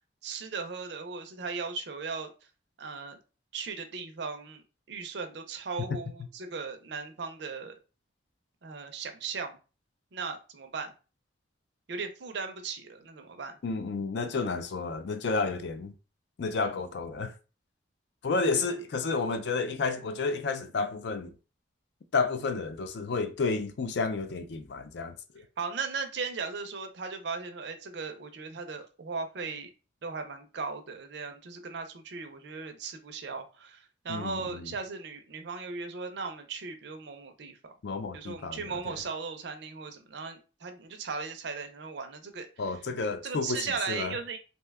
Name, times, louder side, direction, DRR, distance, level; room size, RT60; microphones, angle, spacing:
voice 1, 0.2-2.3 2.8-3.2 3.5-4.6 4.9-7.7 8.6-9.6 10.1-10.9 11.9-13.5 25.6-29.7 30.0-37.8 38.1-42.7 43.2-44.4, right 4 dB, 60° right, 0.5 m, -37 dB
voice 2, 13.6-15.9 16.4-17.3 18.2-21.3 22.1-25.1 34.1-34.7 37.8-39.0 42.6-44.2, left 4 dB, 60° left, 0.4 m, -31 dB
2.7 x 2.2 x 3.4 m
head